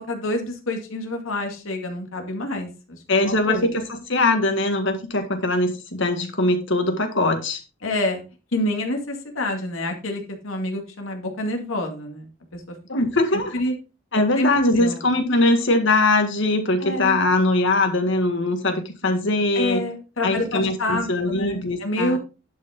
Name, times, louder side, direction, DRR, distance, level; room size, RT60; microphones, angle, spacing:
voice 1, 0.0-3.0 3.3-3.7 7.8-8.2 8.5-12.3 12.5-12.6 13.5-13.7 14.4-14.5 14.8-15.0 16.8-17.2 19.6-22.2, left 1 dB, 85° left, 3 dB, 2.2 m, -27 dB
voice 2, 3.1-7.6 12.9-13.5 14.1-19.8 20.2-22.2, left 2 dB, 65° left, 6 dB, 1.9 m, -21 dB
11.5 x 5.6 x 3.7 m, 0.31 s
head